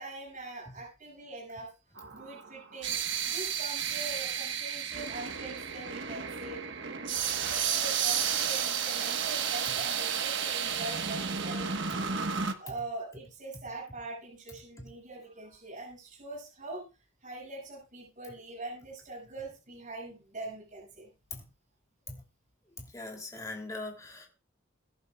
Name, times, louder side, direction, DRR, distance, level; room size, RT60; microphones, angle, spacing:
voice 1, 0.0-1.7 2.1-3.0 3.3-6.6 7.7-11.7 12.6-16.9 17.2-21.1, right 2 dB, 40° right, 7.0 m, -43 dB
sound 1, 2.0-12.5, right 7 dB, 60° right, 1.4 m, -32 dB
voice 2, 22.8-24.3, left 2 dB, 15° left, 3.0 m, -41 dB
23.0 x 11.0 x 2.4 m
head